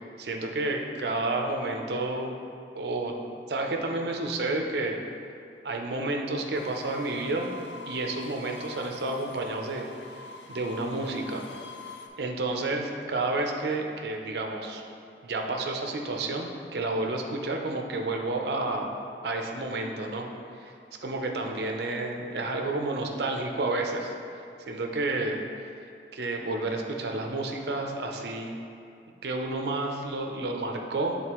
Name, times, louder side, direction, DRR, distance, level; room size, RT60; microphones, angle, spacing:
voice 1, 0.2-2.3 2.7-3.2 3.5-5.0 5.6-7.5 7.9-9.9 10.5-11.5 12.2-14.8 15.2-18.9 19.2-20.3 20.5-20.7 21.0-24.1 24.7-25.4 26.1-28.6 29.2-31.2, right 2 dB, 70° right, 2 dB, 0.6 m, -30 dB
sound 1, 6.5-12.1, left 3 dB, 80° left, 0.5 m, -44 dB
8.4 x 3.8 x 3.0 m, 2.5 s
head